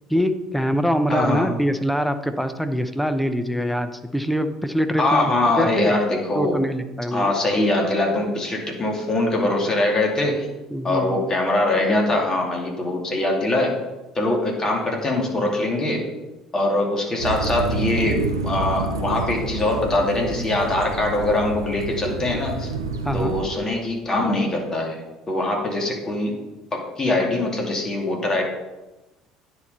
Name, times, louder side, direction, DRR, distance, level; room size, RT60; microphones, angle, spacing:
voice 1, 0.1-5.9 6.4-7.3 10.7-11.2 23.0-23.3, equal, 5° left, 9 dB, 0.8 m, -24 dB
voice 2, 1.1-1.5 5.0-6.6 7.1-10.5 10.8-13.7 14.1-16.0 16.5-22.7 23.1-25.0 25.3-26.3 26.7-28.4, left 2 dB, 25° left, 0 dB, 2.5 m, -22 dB
sound 1, 17.2-23.4, right 3 dB, 85° right, 0.7 m, -28 dB
9.6 x 4.5 x 5.4 m, 1.0 s
figure-of-eight pair, 60°, 2 cm